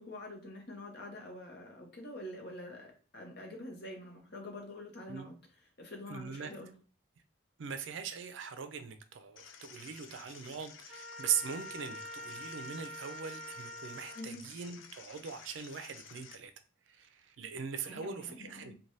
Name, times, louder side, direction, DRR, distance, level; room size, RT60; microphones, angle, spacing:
voice 1, 0.0-6.7 14.1-14.5 17.8-18.7, left 1 dB, 55° left, 0.8 m, -46 dB
voice 2, 6.1-6.5 7.6-16.5 16.9-18.7, right 7 dB, 70° right, 0.4 m, -40 dB
sound 1, 9.4-16.4, left 7 dB, 70° left, 0.4 m, -53 dB
Trumpet, 10.9-14.3, left 1 dB, ahead, 0.8 m, -45 dB
3.2 x 2.2 x 2.6 m
head